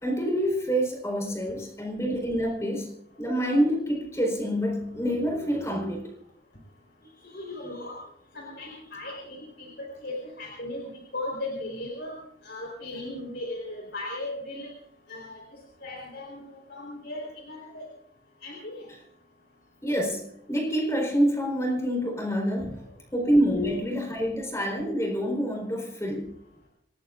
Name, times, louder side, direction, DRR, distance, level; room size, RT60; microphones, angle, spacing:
voice 1, 0.0-2.9 3.2-6.1 19.8-22.8 23.1-26.3, equal, 15° left, 2 dB, 4.2 m, -27 dB
voice 2, 7.2-8.0 8.3-12.2 12.4-14.7 15.1-15.4 15.8-17.9 18.4-18.9 22.6-22.7, left 1 dB, 60° left, -1 dB, 4.3 m, -37 dB
26.5 x 19.0 x 2.5 m, 0.74 s
head